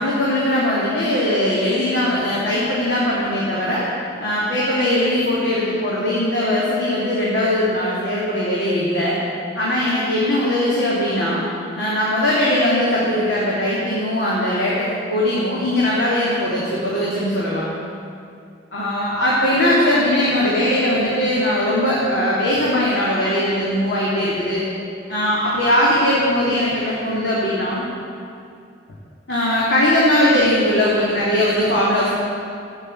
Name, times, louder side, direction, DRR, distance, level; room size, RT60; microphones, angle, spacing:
voice 1, 0.0-3.8 4.2-9.2 9.5-11.4 11.7-17.6 18.7-24.6 25.1-27.8 29.3-32.1, left 1 dB, 60° left, -7 dB, 3.1 m, -20 dB
15.5 x 9.2 x 9.8 m, 2.4 s
head